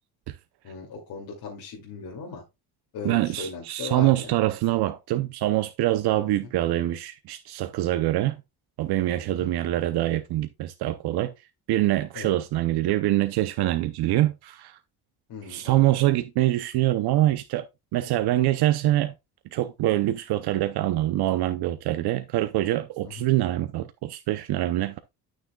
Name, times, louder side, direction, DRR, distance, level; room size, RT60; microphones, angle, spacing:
voice 1, 0.6-2.4 2.9-4.3 6.2-6.3 9.3-9.5 12.1-12.3 15.3-15.8 23.0-23.2, left 4 dB, 60° left, 2.6 m, -38 dB
voice 2, 3.0-8.4 8.8-11.3 11.7-14.8 15.4-17.7 17.9-19.1 19.5-25.0, right 15 dB, 80° right, 0.7 m, -24 dB
11.5 x 6.5 x 2.3 m
cardioid pair, 155°, 38 cm